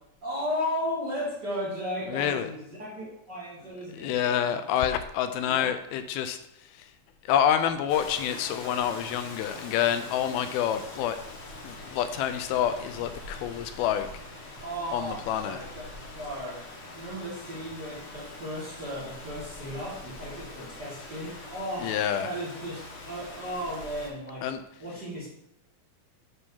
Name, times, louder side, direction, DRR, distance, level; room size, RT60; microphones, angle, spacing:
voice 1, 0.2-4.6 5.4-5.7 14.6-24.4 24.8-25.3, equal, 35° right, -7 dB, 2.0 m, -35 dB
voice 2, 2.1-2.5 3.6-6.4 6.7-6.9 7.3-11.2 11.6-14.1 14.9-15.6 21.8-22.3 24.4-24.6, left 9 dB, 85° left, 9 dB, 2.4 m, -28 dB
Rain, 7.9-24.1, left 2 dB, 55° left, 1.7 m, -43 dB
9.6 x 3.5 x 5.4 m, 0.80 s
omnidirectional pair, 4.4 m